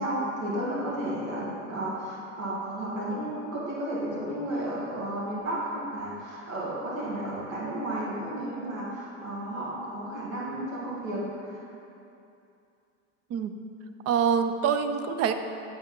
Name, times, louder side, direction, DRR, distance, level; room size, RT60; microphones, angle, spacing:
voice 1, 0.0-11.6, right 1 dB, 90° right, -7 dB, 1.8 m, -33 dB
voice 2, 14.1-15.3, right 7 dB, 40° right, 8 dB, 0.5 m, -25 dB
8.8 x 6.5 x 3.0 m, 2.6 s
hypercardioid pair, 90°, 39 cm